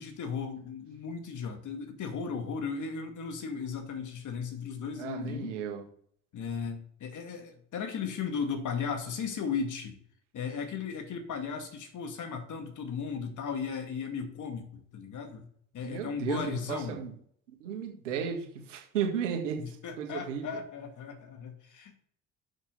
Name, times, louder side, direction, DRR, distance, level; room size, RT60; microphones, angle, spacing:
voice 1, 0.0-5.5 6.3-10.0 10.3-15.5 15.7-17.0 19.6-22.0, left 6 dB, 55° left, 5 dB, 1.9 m, -36 dB
voice 2, 5.0-5.8 15.8-17.1 17.5-19.6 20.0-20.5, right 7 dB, 90° right, 1 dB, 1.8 m, -34 dB
6.6 x 6.1 x 5.5 m, 0.62 s
hypercardioid pair, 55°, 37 cm